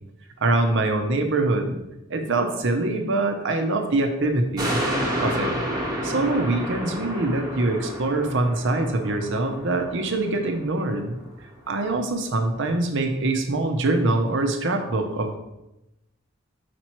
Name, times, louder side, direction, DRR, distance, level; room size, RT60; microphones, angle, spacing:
voice 1, 0.4-1.8 2.1-4.8 5.2-5.5 6.0-11.2 11.7-15.3, right 2 dB, 65° right, 5 dB, 0.8 m, -24 dB
sound 1, 4.6-11.2 11.6-11.7, equal, 20° right, 1.2 m, -30 dB
5.1 x 4.6 x 4.4 m, 0.92 s
head